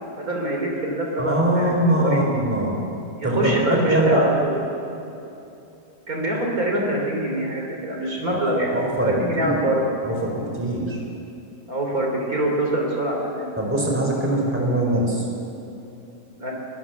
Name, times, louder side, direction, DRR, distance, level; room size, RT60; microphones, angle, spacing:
voice 1, 0.2-2.4 3.2-4.6 6.1-9.8 11.7-13.5 16.3-16.5, right 1 dB, 50° right, 0 dB, 3.9 m, -25 dB
voice 2, 1.2-2.7 3.2-3.6 3.9-4.3 8.3-8.4 8.7-9.6 10.0-11.0 13.6-15.2, right 1 dB, 5° right, -1 dB, 4.5 m, -22 dB
24.0 x 22.0 x 7.2 m, 2.8 s
omnidirectional pair, 1.9 m